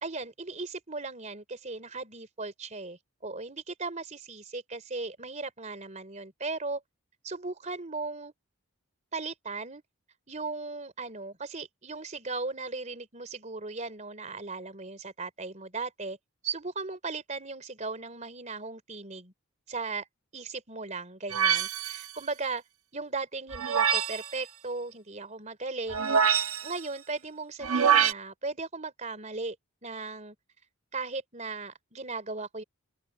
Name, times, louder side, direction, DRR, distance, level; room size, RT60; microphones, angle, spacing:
voice 1, 0.0-6.8 7.2-8.3 9.1-9.8 10.3-16.2 16.4-19.3 19.7-20.1 20.3-22.6 22.9-26.1 26.6-29.6 29.8-30.4 30.9-32.6, right 3 dB, 30° right, 3.6 m, -37 dB
sound 1, 21.3-22.1 23.5-24.3 25.9-26.8 27.6-28.1, right 7 dB, 75° right, 1.3 m, -25 dB
open air
head